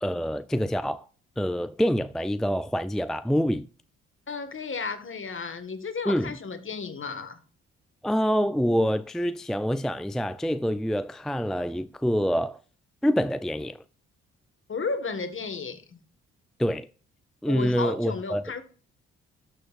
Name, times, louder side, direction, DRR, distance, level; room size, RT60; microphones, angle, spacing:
voice 1, 0.0-1.1 1.4-3.7 6.1-6.3 8.0-12.6 13.0-13.8 16.6-16.9 17.4-18.4, equal, ahead, 0.4 m, -26 dB
voice 2, 4.3-7.4 14.7-16.0 17.5-18.6, left 4 dB, 40° left, 1.7 m, -33 dB
12.0 x 6.5 x 2.5 m
hypercardioid pair, 50°, 30 cm